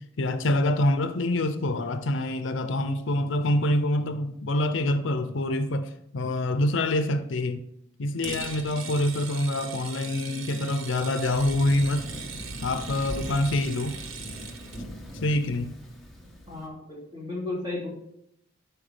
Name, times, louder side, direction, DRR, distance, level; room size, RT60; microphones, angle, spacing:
voice 1, 0.2-7.7 8.0-12.1 12.6-14.0 15.2-15.8, left 1 dB, 70° left, 0.6 m, -26 dB
sound 1, 8.2-14.8, right 5 dB, 80° right, 0.8 m, -40 dB
Thunder, 11.3-16.7, equal, ahead, 1.3 m, -40 dB
voice 2, 16.5-17.9, left 2 dB, 20° right, 2.5 m, -34 dB
11.0 x 4.7 x 3.4 m
head